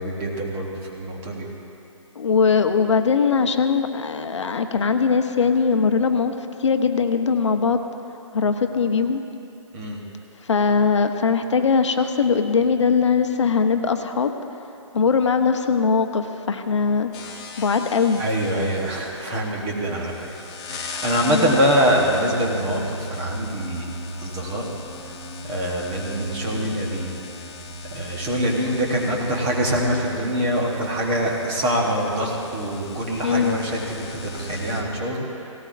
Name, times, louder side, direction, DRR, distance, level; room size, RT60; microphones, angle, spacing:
voice 1, 0.0-1.5 9.7-10.0 18.2-20.3 20.6-23.9 24.2-24.7 25.4-27.2 27.9-35.3, equal, 15° right, -2 dB, 1.0 m, -24 dB
voice 2, 2.2-7.8 8.3-9.2 10.4-14.3 14.9-17.1 17.6-18.2 21.3-21.6 33.2-33.6, left 5 dB, 60° left, 7 dB, 0.9 m, -20 dB
sound 1, 17.1-34.8, left 1 dB, 10° left, 0.6 m, -36 dB
18.0 x 18.0 x 2.5 m, 2.8 s
hypercardioid pair, 170°, 17 cm